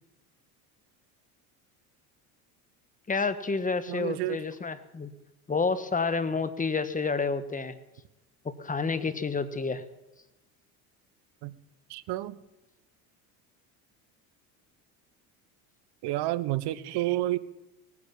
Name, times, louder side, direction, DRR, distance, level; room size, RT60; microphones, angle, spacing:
voice 1, 3.1-5.1 5.5-7.7 8.4-9.8, left 4 dB, 20° left, 12 dB, 1.4 m, -29 dB
voice 2, 3.9-4.4 11.4-11.5 11.9-12.4 16.0-17.4, right 16 dB, 60° right, 17 dB, 1.0 m, -30 dB
19.0 x 9.7 x 7.4 m, 0.96 s
supercardioid pair, 85°, 44 cm